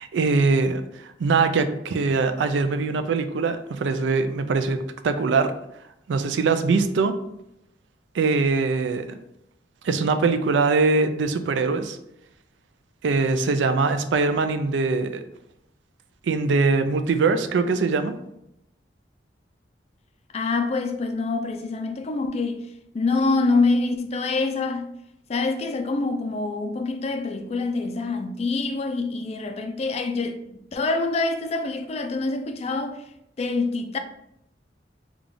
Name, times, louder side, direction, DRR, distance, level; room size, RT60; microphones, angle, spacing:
voice 1, 0.0-5.5 6.1-7.2 8.1-9.2 9.8-12.0 13.0-15.2 16.2-18.1, right 4 dB, 80° right, 0.4 m, -22 dB
voice 2, 20.3-22.6 22.9-24.9 25.3-33.0 33.4-34.0, left 3 dB, 35° left, 0.3 m, -25 dB
3.4 x 2.3 x 3.8 m
head